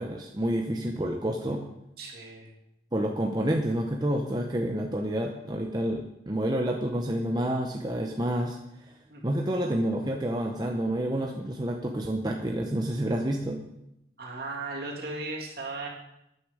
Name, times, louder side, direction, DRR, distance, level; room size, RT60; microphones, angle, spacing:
voice 1, 0.0-1.6 2.9-8.6 9.2-13.6, right 1 dB, 20° right, 2 dB, 0.8 m, -29 dB
voice 2, 2.0-2.5 9.1-9.2 14.2-15.9, right 3 dB, 55° right, -2 dB, 2.8 m, -36 dB
13.0 x 9.5 x 4.9 m, 0.85 s
head